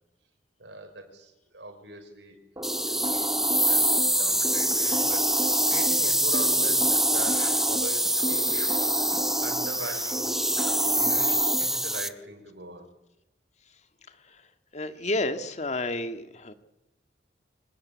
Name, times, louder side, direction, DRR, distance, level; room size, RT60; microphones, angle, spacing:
voice 1, 0.6-2.4 2.8-6.8 7.1-8.5 8.9-10.4 10.8-12.9, right 2 dB, 85° right, 6 dB, 5.1 m, -42 dB
sound 1, 2.6-12.1, right 1 dB, ahead, 0.8 m, -25 dB
sound 2, 2.6-12.0, right 1 dB, 20° right, 2.3 m, -34 dB
sound 3, 3.9-5.0 5.6-5.7 5.9-6.0 6.3-11.7, left 2 dB, 20° left, 4.5 m, -46 dB
voice 2, 14.1-14.5 14.7-16.5, left 2 dB, 40° left, 8 dB, 1.8 m, -31 dB
25.0 x 20.5 x 8.5 m, 0.94 s
head